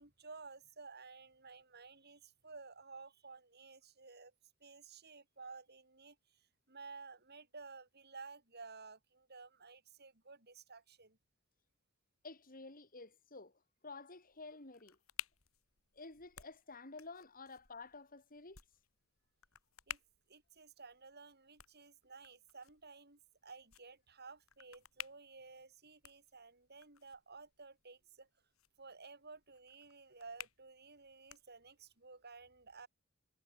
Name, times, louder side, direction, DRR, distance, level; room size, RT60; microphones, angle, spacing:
voice 1, 0.0-4.3 4.6-11.2 19.9-20.0 20.3-28.3 28.8-32.9, right 4 dB, 50° right, 7.0 m, -54 dB
voice 2, 12.2-15.0 15.9-18.6, left 3 dB, 40° left, 3.7 m, -52 dB
sound 1, 14.3-32.0, left 10 dB, 75° left, 4.6 m, -55 dB
head